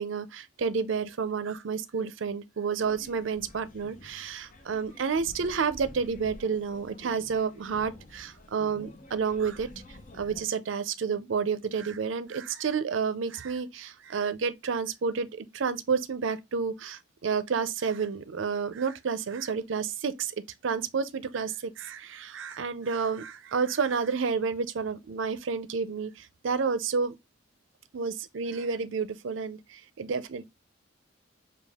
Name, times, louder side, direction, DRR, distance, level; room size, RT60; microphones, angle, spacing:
voice 1, 0.0-20.3 20.6-27.1 27.9-30.5, right 5 dB, 70° right, 0.5 m, -30 dB
sound 1, 2.8-10.4, left 1 dB, 40° left, 0.7 m, -50 dB
5.2 x 2.3 x 3.4 m
head